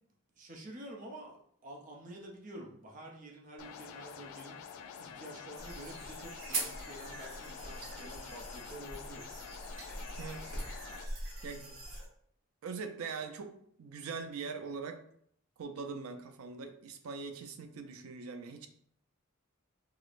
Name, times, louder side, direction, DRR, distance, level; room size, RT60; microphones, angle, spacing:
voice 1, 0.4-1.4 1.6-4.6 5.0-9.2, right 1 dB, 40° right, -1 dB, 0.5 m, -48 dB
sound 1, 3.6-11.0, left 7 dB, 80° left, 0.3 m, -48 dB
sound 2, 5.6-12.1, right 2 dB, 70° right, 1.2 m, -42 dB
voice 2, 10.2-10.5 11.4-11.8 12.6-15.0 15.6-18.7, right 5 dB, 90° right, 7 dB, 0.4 m, -42 dB
4.8 x 2.0 x 2.4 m, 0.67 s
head